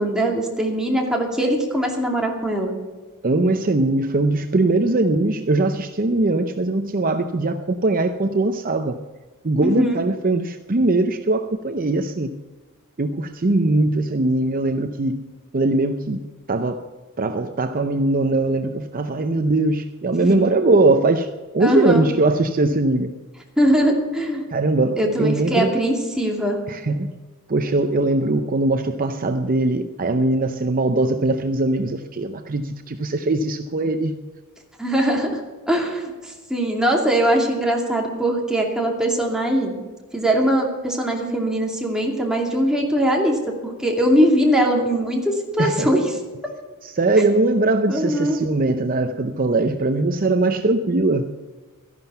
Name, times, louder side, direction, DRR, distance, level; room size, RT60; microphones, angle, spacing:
voice 1, 0.0-2.7 9.6-10.0 20.2-20.5 21.6-22.1 23.6-24.4 25.0-26.6 34.8-35.4 35.7-39.8 40.1-46.1 47.9-48.4, equal, 5° right, -1 dB, 2.5 m, -21 dB
voice 2, 3.2-9.0 9.4-12.3 13.0-15.2 15.5-16.2 16.5-16.8 17.2-21.3 21.5-23.1 24.5-25.7 26.7-27.2 27.5-34.2 45.6-46.0 46.8-51.3, right 2 dB, 40° right, 8 dB, 0.7 m, -21 dB
13.5 x 11.0 x 5.6 m, 1.3 s
head